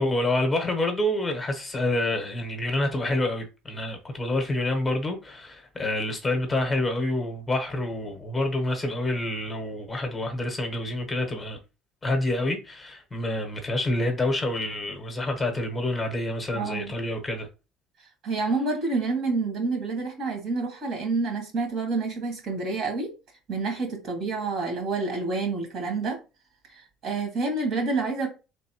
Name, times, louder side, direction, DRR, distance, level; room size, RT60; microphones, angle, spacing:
voice 1, 0.0-11.6 12.0-17.5, left 1 dB, 15° left, 0.9 m, -27 dB
voice 2, 16.5-16.9 18.2-23.1 23.5-26.2 27.0-28.3, right 3 dB, 55° right, 1.8 m, -28 dB
4.0 x 3.4 x 2.9 m
cardioid pair, 125°, 0 cm